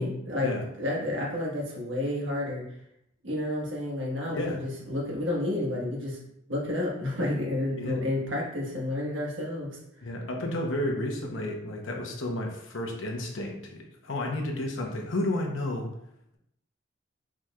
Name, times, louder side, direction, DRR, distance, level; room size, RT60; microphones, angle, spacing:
voice 1, 0.0-2.6 3.2-6.2 6.5-9.7, left 1 dB, 75° right, -3 dB, 1.5 m, -30 dB
voice 2, 10.0-15.9, left 1 dB, 75° left, 2 dB, 0.9 m, -32 dB
4.8 x 4.6 x 2.4 m, 0.76 s
head